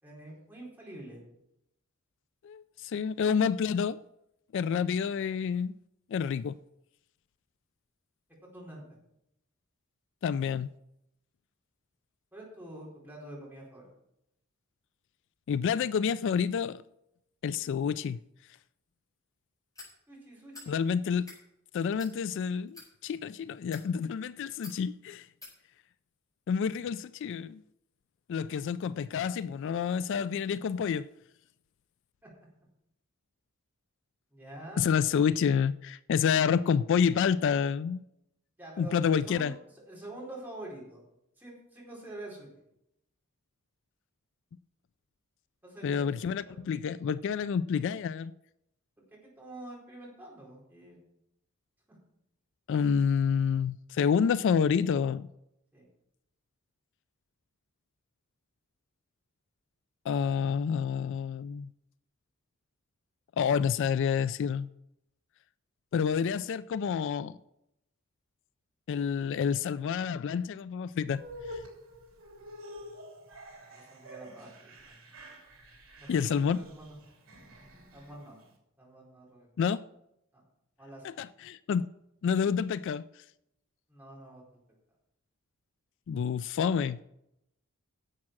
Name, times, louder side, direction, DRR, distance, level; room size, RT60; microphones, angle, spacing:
voice 1, 0.0-1.2 8.4-9.0 12.3-13.9 20.1-20.8 32.2-32.3 34.3-34.9 38.6-39.6 39.9-41.0 41.4-42.5 45.6-46.1 46.5-46.6 49.2-51.0 55.7-55.8 73.6-74.9 76.0-77.0 77.9-78.4 78.8-79.5 80.3-80.4 80.8-81.1 83.9-84.4, right 1 dB, 10° right, 4.3 m, -46 dB
voice 2, 2.4-4.0 4.5-5.7 6.1-6.6 10.2-10.7 15.5-16.8 17.4-18.2 20.7-21.3 21.7-25.3 26.5-27.6 28.3-31.1 34.8-38.0 38.8-39.5 45.8-48.3 52.7-55.3 60.1-61.7 63.4-64.7 65.9-67.4 68.9-71.6 76.1-76.6 79.6-79.8 81.0-81.9 82.2-83.0 86.1-87.0, left 7 dB, 60° left, 0.3 m, -28 dB
sound 1, 19.7-19.9 20.5-20.7 21.1-21.4 22.0-22.1 22.7-22.9 23.6-23.9 24.6-24.8 25.4-25.5, left 3 dB, 15° left, 4.9 m, -48 dB
sound 2, 71.1-78.5, equal, 80° right, 3.2 m, -48 dB
11.0 x 7.4 x 6.0 m
head